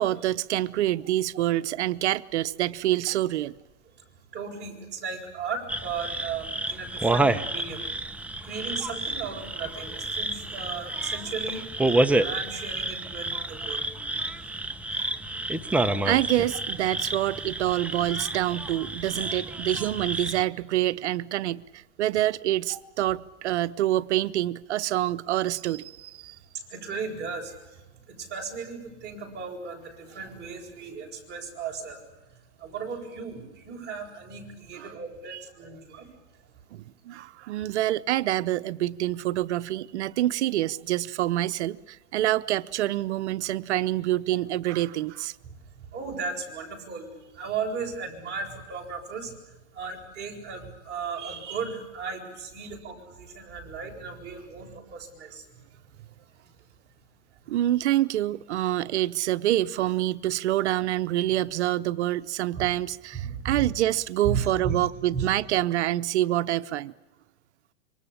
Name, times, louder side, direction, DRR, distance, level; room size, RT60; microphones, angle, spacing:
voice 1, 0.0-3.5 14.9-15.0 16.0-26.4 34.8-34.9 35.3-35.4 36.7-45.4 57.5-66.9, right 14 dB, 70° right, 0.9 m, -26 dB
voice 2, 3.8-14.1 14.9-16.0 26.2-36.4 40.1-40.2 45.5-55.7 56.0-56.5 57.4-57.6 62.5-62.7 63.1-63.7 64.2-64.8 65.1-65.3, right 5 dB, 30° right, 7.9 m, -36 dB
sound 1, 5.7-20.4, right 2 dB, 5° right, 0.9 m, -29 dB
27.0 x 24.5 x 8.7 m
supercardioid pair, 140°, 35 cm